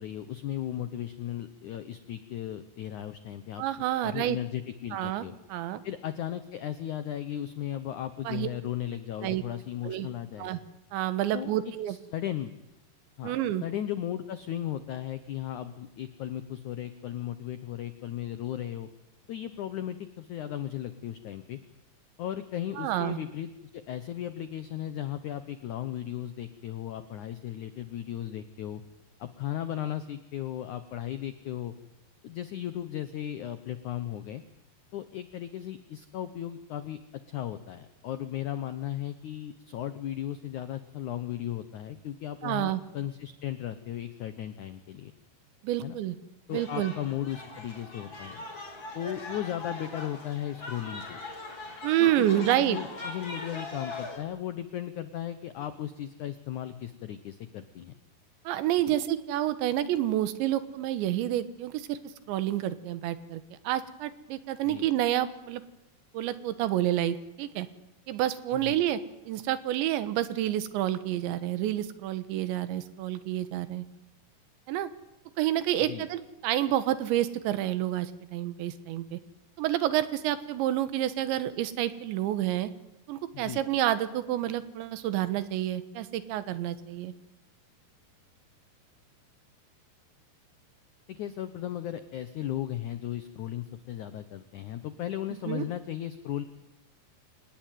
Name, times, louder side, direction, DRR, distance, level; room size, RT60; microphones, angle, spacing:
voice 1, 0.0-3.6 4.0-5.3 5.8-10.5 11.3-11.5 11.9-12.5 13.2-18.9 19.3-21.6 22.2-28.8 29.2-31.7 32.2-34.4 34.9-37.0 37.3-45.1 45.8-46.0 46.5-48.5 49.0-51.2 52.0-57.9 58.8-59.0 64.7-64.9 68.5-68.8 75.9-76.1 83.3-83.6 91.1-96.4, left 11 dB, 85° left, 12 dB, 1.7 m, -36 dB
voice 2, 3.6-4.4 4.9-5.8 8.3-8.5 9.2-9.4 9.8-10.1 10.4-10.6 10.9-12.0 13.2-13.6 22.8-23.2 42.4-42.8 45.6-46.2 46.5-46.9 51.8-52.8 58.5-62.0 62.3-65.6 66.1-67.7 68.1-69.0 69.3-73.9 74.7-74.9 75.4-79.2 79.6-82.7 83.1-87.1 95.5-95.7, right 12 dB, 85° right, 13 dB, 3.6 m, -29 dB
sound 1, 46.5-54.2, left 2 dB, 30° left, 4.4 m, -41 dB
26.0 x 19.0 x 9.3 m, 0.93 s
omnidirectional pair, 5.0 m